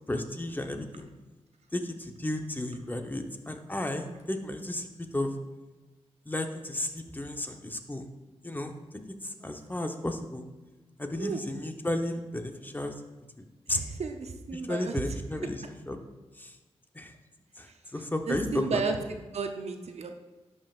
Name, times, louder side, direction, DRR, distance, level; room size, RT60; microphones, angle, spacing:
voice 1, 0.1-1.1 1.7-4.9 5.1-5.3 6.3-8.1 8.4-8.7 9.2-10.4 11.0-12.9 13.4-13.8 14.5-16.0 16.4-16.5 16.9-17.1 17.6-18.8, left 1 dB, 15° left, 5 dB, 0.8 m, -33 dB
voice 2, 13.7-14.9 18.3-20.1, right 4 dB, 70° right, 5 dB, 0.6 m, -33 dB
11.5 x 5.4 x 2.4 m, 1.2 s
cardioid pair, 55°, 11 cm